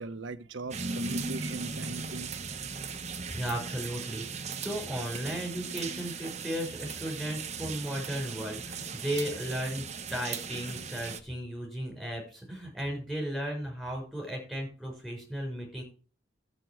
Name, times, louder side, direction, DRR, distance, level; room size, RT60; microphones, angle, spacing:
voice 1, 0.0-2.3, right 3 dB, 75° right, 0.9 m, -40 dB
sound 1, 0.7-11.2, right 5 dB, 35° right, 1.0 m, -38 dB
voice 2, 3.3-15.8, equal, ahead, 5.6 m, -35 dB
13.5 x 7.5 x 4.7 m
head